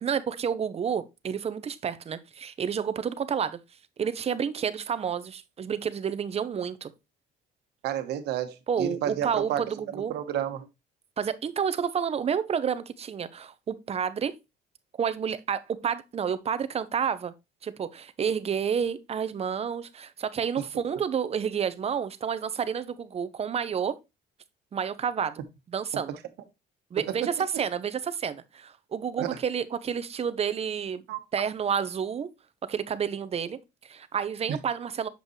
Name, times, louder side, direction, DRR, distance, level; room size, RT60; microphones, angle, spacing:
voice 1, 0.0-3.6 4.0-6.9 8.7-10.1 11.2-14.3 15.0-17.3 17.6-24.0 24.7-25.4 25.7-26.2 26.9-31.0 31.3-32.3 32.7-35.1, right 7 dB, 35° right, 0.8 m, -30 dB
voice 2, 7.8-9.6 9.9-10.7 27.1-27.2 29.2-29.4 31.1-31.2 34.5-34.6, right 10 dB, 80° right, 1.3 m, -31 dB
7.8 x 5.2 x 3.1 m
cardioid pair, 110°, 17 cm